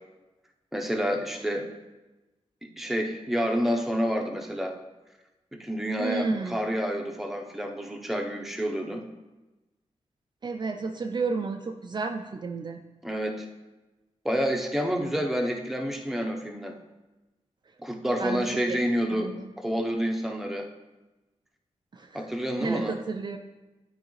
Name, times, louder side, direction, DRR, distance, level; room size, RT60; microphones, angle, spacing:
voice 1, 0.7-1.7 2.8-4.8 5.6-9.0 13.0-13.5 14.2-16.7 17.8-20.7 22.1-22.9, equal, ahead, 2 dB, 0.7 m, -29 dB
voice 2, 6.0-6.6 10.4-12.8 18.2-18.8 19.1-19.5 21.9-22.3 22.6-23.4, right 4 dB, 40° right, 4 dB, 0.4 m, -32 dB
11.5 x 4.8 x 3.1 m, 1.1 s
wide cardioid pair, 145°, 12 cm